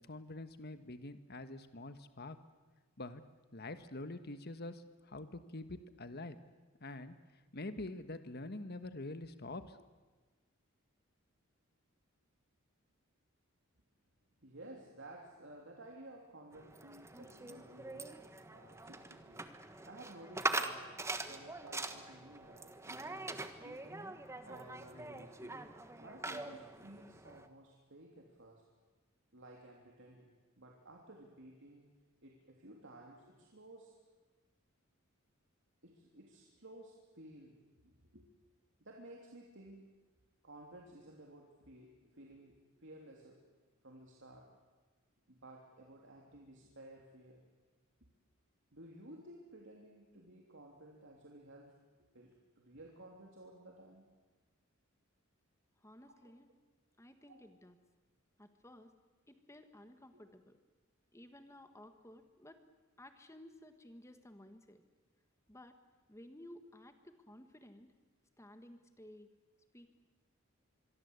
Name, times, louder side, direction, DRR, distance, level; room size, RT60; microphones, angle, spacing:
voice 1, 0.0-2.4 3.0-3.2 3.5-6.4 6.8-7.1 7.5-9.8, left 2 dB, 50° left, 10 dB, 1.4 m, -45 dB
voice 2, 14.4-18.2 18.5-19.5 19.8-20.9 21.3-24.0 24.4-25.6 26.0-28.6 29.3-31.9 32.2-33.9 35.8-38.3 38.8-39.8 40.4-43.4 43.8-44.5 45.3-47.4 48.7-51.7 52.1-54.1 56.0-56.1 57.3-57.4 60.1-60.2, right 1 dB, 60° right, 0 dB, 3.2 m, -55 dB
sound 1, 16.5-27.5, right 2 dB, 15° right, 1.4 m, -43 dB
voice 3, 55.8-56.5 57.0-57.8 58.4-58.9 59.3-60.6 61.1-62.6 63.0-64.8 65.5-65.8 66.1-67.9 68.4-69.3 69.7-69.9, left 1 dB, 15° left, 8 dB, 1.6 m, -56 dB
26.0 x 23.0 x 8.2 m, 1.3 s
head